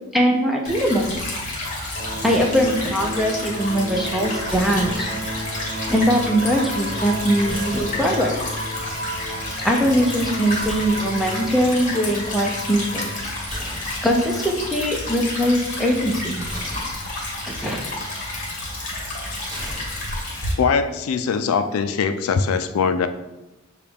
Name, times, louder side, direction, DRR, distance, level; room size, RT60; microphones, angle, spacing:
voice 1, 0.1-1.1 2.2-5.1 5.9-8.4 9.6-13.3 14.0-16.4 17.4-17.8, equal, ahead, 0 dB, 0.5 m, -21 dB
Stream / Trickle dribble, 0.6-20.5, left 2 dB, 35° left, 1.2 m, -30 dB
sound 1, 1.9-13.2, right 1 dB, 55° right, 1.1 m, -33 dB
sound 2, 4.5-5.4 7.5-8.6 10.5-11.4 13.5-14.5 16.5-17.4 19.5-20.5, equal, 20° right, 0.8 m, -37 dB
voice 2, 20.6-23.1, left 5 dB, 70° left, 9 dB, 0.3 m, -21 dB
6.6 x 2.3 x 3.5 m, 1.0 s
head